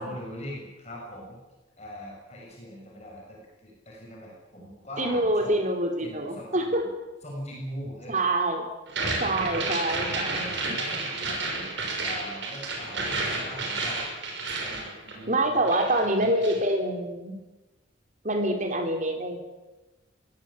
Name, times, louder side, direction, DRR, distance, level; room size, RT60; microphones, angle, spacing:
voice 1, 0.0-1.4 1.8-5.6 6.0-6.9 7.2-8.2 10.3-11.6 12.0-14.0 14.5-16.6, equal, 35° left, -2 dB, 6.5 m, -41 dB
voice 2, 5.0-6.8 8.1-8.7 9.2-10.8 15.3-17.3 18.2-19.4, right 1 dB, 40° right, 4 dB, 3.8 m, -26 dB
sound 1, 8.9-15.4 15.7-16.7, right 3 dB, 70° right, 6.0 m, -31 dB
22.5 x 17.0 x 8.7 m, 1.1 s
head